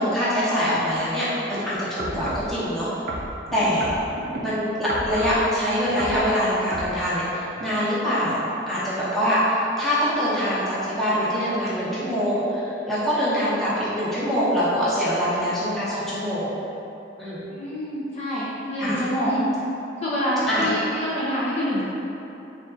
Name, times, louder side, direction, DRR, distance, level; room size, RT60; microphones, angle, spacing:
voice 1, 0.0-3.0 3.5-3.9 4.4-16.5 17.2-17.4 18.8-19.0 20.5-20.7, equal, ahead, -12 dB, 0.9 m, -24 dB
sound 1, 2.0-2.5 3.1-4.4 4.9-5.4 5.8-6.2 6.7-6.9 7.6-7.7, right 1 dB, 55° right, 0.5 m, -32 dB
voice 2, 17.5-19.4 20.0-21.8, equal, 35° left, -8 dB, 0.4 m, -26 dB
3.5 x 2.4 x 3.7 m, 2.9 s
head